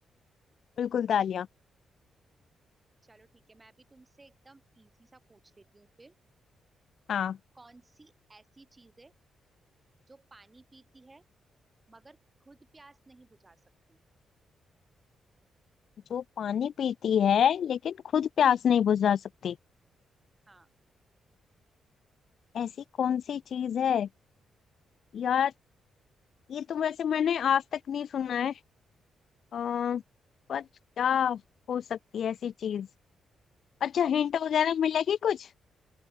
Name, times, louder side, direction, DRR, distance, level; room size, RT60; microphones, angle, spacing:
voice 1, 0.8-1.5 7.1-7.4 16.1-19.6 22.5-22.7 23.0-24.1 25.1-25.5 26.5-28.5 29.5-30.0 30.5-30.6 31.0-31.4 31.7-32.9 33.8-35.5, left 8 dB, 65° left, 0.3 m, -27 dB
voice 2, 3.0-6.2 7.5-9.1 10.1-11.3 11.9-12.2 12.5-13.6 13.9-14.0 20.5-20.7, right 3 dB, 20° right, 7.0 m, -57 dB
open air
cardioid pair, 100°, 0 cm